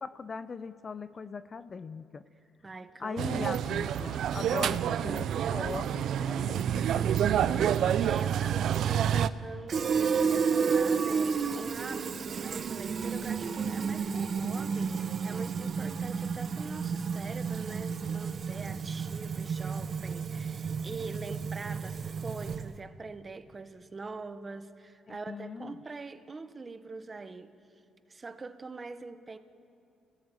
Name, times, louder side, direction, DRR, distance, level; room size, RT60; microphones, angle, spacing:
voice 1, 0.0-2.2 3.0-7.9 25.1-25.8, left 5 dB, 40° left, 14 dB, 0.7 m, -40 dB
voice 2, 2.6-3.7 7.5-27.8 28.1-29.4, right 3 dB, 30° right, 10 dB, 1.2 m, -43 dB
sound 1, 3.2-9.3, right 9 dB, 75° right, 0.6 m, -28 dB
Fill (with liquid), 9.7-22.8, right 6 dB, 50° right, 0.9 m, -31 dB
25.0 x 17.0 x 9.1 m, 2.7 s
cardioid pair, 90°, 0 cm